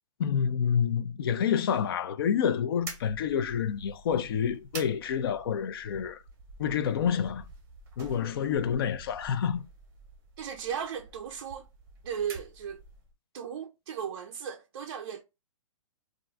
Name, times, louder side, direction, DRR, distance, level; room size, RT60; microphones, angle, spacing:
voice 1, 0.2-6.2 6.6-7.4 8.0-9.6, left 8 dB, 45° left, 0.4 m, -28 dB
sound 1, 2.8-13.1, right 4 dB, 15° right, 0.8 m, -48 dB
voice 2, 10.4-11.7 12.0-12.8 13.3-15.2, right 8 dB, 45° right, 0.4 m, -36 dB
2.4 x 2.2 x 3.8 m
hypercardioid pair, 155°, 17 cm